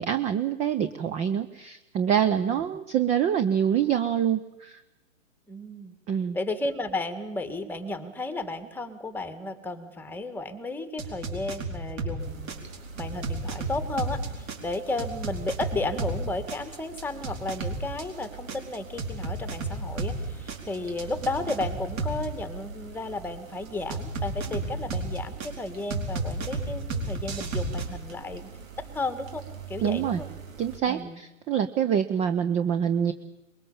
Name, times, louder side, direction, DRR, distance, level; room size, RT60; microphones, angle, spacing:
voice 1, 0.0-4.8 6.1-6.4 29.8-30.2 30.6-33.1, right 8 dB, 15° right, 10 dB, 0.7 m, -25 dB
voice 2, 5.5-6.0 6.3-12.6 13.0-28.5 28.8-29.4 29.7-30.3 30.9-31.2, left 2 dB, 5° left, 10 dB, 1.7 m, -33 dB
sound 1, 11.0-12.2 12.5-16.2 16.5-20.2 20.5-22.3 23.9-25.5 25.9-27.9, right 3 dB, 35° right, 4.7 m, -32 dB
sound 2, 12.2-30.8, right 5 dB, 75° right, 3.8 m, -44 dB
23.0 x 21.5 x 7.1 m, 0.98 s
hypercardioid pair, 130°, 40 cm